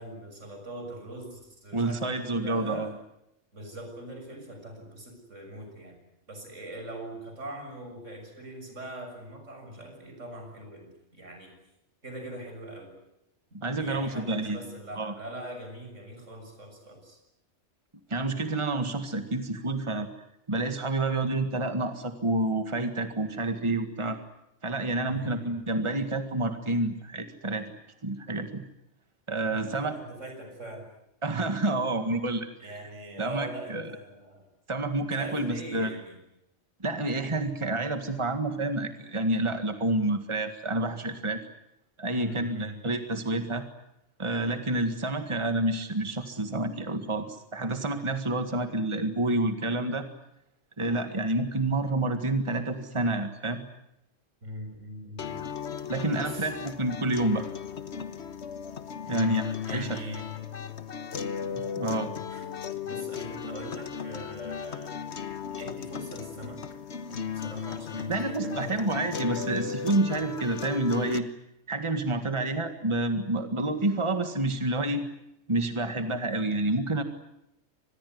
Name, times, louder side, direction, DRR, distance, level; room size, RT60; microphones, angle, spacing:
voice 1, 0.0-2.9 3.5-6.0 6.3-11.5 12.0-12.9 13.5-17.2 25.1-25.6 29.5-30.9 32.6-34.5 35.1-36.2 42.1-42.8 54.4-55.5 56.1-56.5 59.0-60.3 62.3-62.5 62.8-66.6 67.1-68.9, right 1 dB, 90° right, 4 dB, 7.2 m, -42 dB
voice 2, 1.7-3.0 13.5-14.7 15.0-15.1 18.1-20.1 20.5-24.2 24.6-27.7 28.0-28.6 29.3-30.0 31.2-32.5 33.2-33.9 34.7-35.9 36.8-41.5 42.0-43.7 44.2-50.1 50.8-53.6 55.9-57.5 59.1-60.0 61.8-62.1 68.1-71.2 71.7-75.0 75.5-77.0, right 2 dB, 25° right, 8 dB, 1.9 m, -29 dB
sound 1, 55.2-71.2, left 7 dB, 65° left, 1.5 m, -36 dB
25.5 x 20.5 x 9.5 m, 0.82 s
omnidirectional pair, 1.2 m